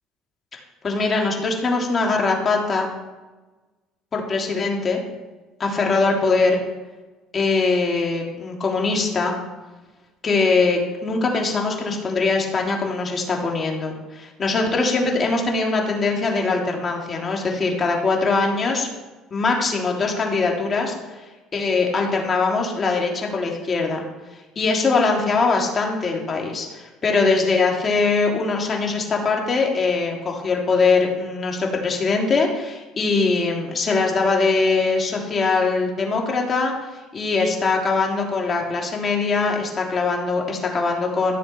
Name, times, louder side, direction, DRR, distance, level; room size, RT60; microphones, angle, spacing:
voice 1, 0.5-2.9 4.1-5.0 5.6-6.6 7.3-9.3 10.2-18.9 19.3-20.9 21.5-24.0 24.5-36.7 37.1-41.4, left 4 dB, 35° left, 0 dB, 3.3 m, -22 dB
14.0 x 7.1 x 5.9 m, 1.2 s
supercardioid pair, 75°, 0 cm